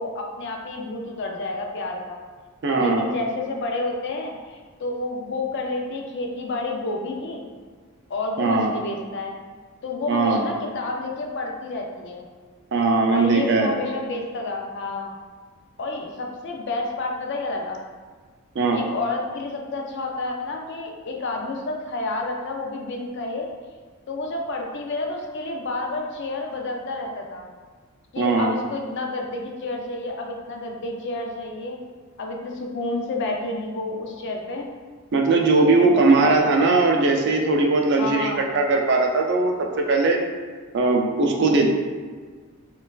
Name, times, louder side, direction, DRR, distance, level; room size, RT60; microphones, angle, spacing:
voice 1, 0.0-2.2 2.8-7.5 8.1-9.3 9.8-12.3 13.1-15.2 15.8-17.8 18.7-23.5 24.1-27.5 28.1-31.8 32.2-34.7 35.6-36.6 38.0-38.4, left 2 dB, 55° left, 1 dB, 0.4 m, -30 dB
voice 2, 2.6-3.1 8.4-8.7 10.1-10.4 12.7-13.7 18.6-18.8 28.2-28.5 35.1-40.2 40.7-41.7, right 3 dB, 50° right, 1 dB, 0.4 m, -19 dB
4.2 x 2.3 x 2.3 m, 1.5 s
head